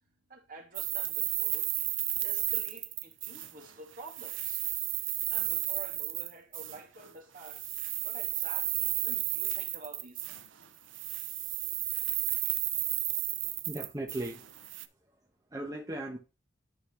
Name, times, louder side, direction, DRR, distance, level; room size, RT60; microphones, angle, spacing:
voice 1, 0.3-1.7 2.2-4.7 5.3-7.7 8.0-10.7, right 2 dB, 45° right, 2.6 m, -50 dB
sound 1, 0.7-3.7 4.0-6.8 7.4-10.6 10.9-14.8, right 15 dB, 75° right, 0.7 m, -33 dB
voice 2, 13.4-14.5 14.8-15.1 15.5-16.2, right 1 dB, 20° right, 1.0 m, -38 dB
11.5 x 4.2 x 3.2 m
head